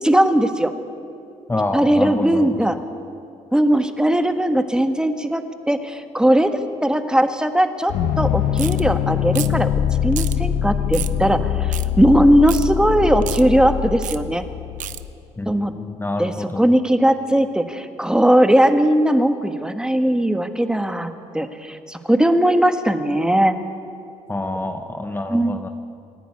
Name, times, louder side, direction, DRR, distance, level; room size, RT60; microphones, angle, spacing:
voice 1, 0.0-0.7 1.7-2.7 3.5-9.7 10.0-14.4 15.5-15.7 16.2-21.1 21.3-23.5 25.3-25.5, right 1 dB, 5° right, 8 dB, 1.5 m, -18 dB
voice 2, 1.5-2.8 15.4-16.6 24.3-25.7, left 2 dB, 15° left, 6 dB, 1.1 m, -27 dB
sound 1, 7.9-15.1, left 9 dB, 85° left, 1.0 m, -23 dB
sound 2, 8.6-8.8 9.3-9.6 10.1-10.4 10.9-11.2 11.7-11.9 12.5-12.7 13.2-13.4 14.0-14.2 14.8-15.0, right 12 dB, 75° right, 0.8 m, -30 dB
27.0 x 11.5 x 9.7 m, 2.6 s
cardioid pair, 90°, 13 cm